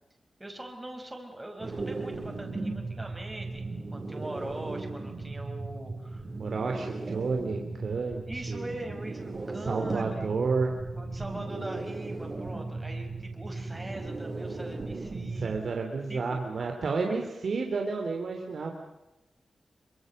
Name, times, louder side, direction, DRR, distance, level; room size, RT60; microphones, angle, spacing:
voice 1, 0.4-6.3 8.3-10.3 10.9-15.5 16.1-16.4 16.8-17.3, right 1 dB, 20° right, 2 dB, 5.0 m, -42 dB
sound 1, 1.6-15.6, right 3 dB, 45° right, 5.1 m, -36 dB
voice 2, 6.4-8.6 9.7-10.7 15.4-18.7, right 4 dB, 70° right, 3 dB, 3.2 m, -31 dB
25.5 x 24.5 x 6.7 m, 0.95 s
cardioid pair, 75°, 0 cm